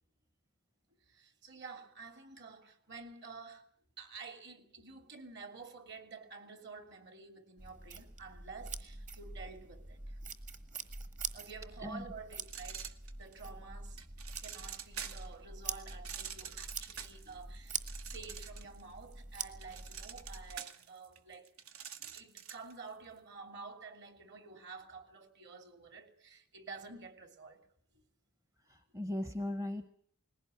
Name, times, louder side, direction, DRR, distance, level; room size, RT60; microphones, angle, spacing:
voice 1, 1.1-3.6 4.0-10.2 11.3-12.9 13.2-14.0 14.4-21.5 22.1-27.7, right 4 dB, 50° right, 2.9 m, -50 dB
sound 1, 7.6-20.6, right 4 dB, 35° right, 1.5 m, -45 dB
sound 2, 12.4-13.5 14.0-15.3 15.9-18.8 19.1-22.7, right 8 dB, 70° right, 1.4 m, -46 dB
voice 2, 28.7-29.9, left 1 dB, 15° right, 0.8 m, -38 dB
20.0 x 17.0 x 9.9 m
head